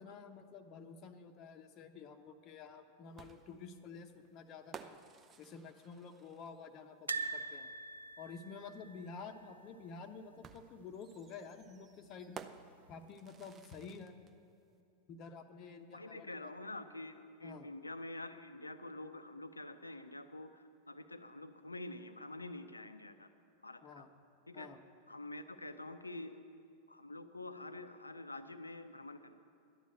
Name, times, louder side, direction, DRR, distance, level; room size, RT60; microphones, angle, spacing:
voice 1, 0.0-5.0 5.4-7.7 8.2-12.4 12.9-14.1 15.1-16.5 17.4-17.7 23.8-24.1 24.5-24.8, left 5 dB, 35° left, 6 dB, 0.9 m, -50 dB
sound 1, 3.2-6.8 8.3-8.4 10.4-14.3, right 6 dB, 25° right, 0.6 m, -55 dB
sound 2, 7.1-10.1 10.4-10.6 10.9-11.0 12.2-12.7 13.2-13.3, right 4 dB, 80° right, 0.4 m, -43 dB
voice 2, 15.9-23.3 23.6-24.0 24.5-24.7 25.1-26.4 26.9-29.3, left 2 dB, 80° left, 11 dB, 0.6 m, -47 dB
12.0 x 9.4 x 8.1 m, 2.6 s
figure-of-eight pair, 90°, 0 cm